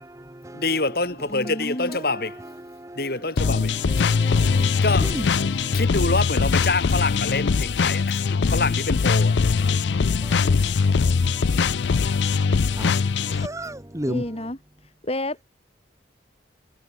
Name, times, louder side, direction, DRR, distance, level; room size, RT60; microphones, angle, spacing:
voice 1, 0.0-0.9 1.9-5.8 8.2-8.5 9.7-14.5, right 1 dB, 20° right, 1.5 m, -37 dB
voice 2, 0.5-2.4 2.9-3.8 4.8-5.2 5.7-9.4 12.8-13.5, left 3 dB, 60° left, 6.6 m, -26 dB
voice 3, 1.3-2.0 14.1-14.6 14.8-15.4, left 1 dB, 35° left, 4.9 m, -30 dB
sound 1, 3.4-13.5, left 5 dB, 90° left, 0.5 m, -21 dB
head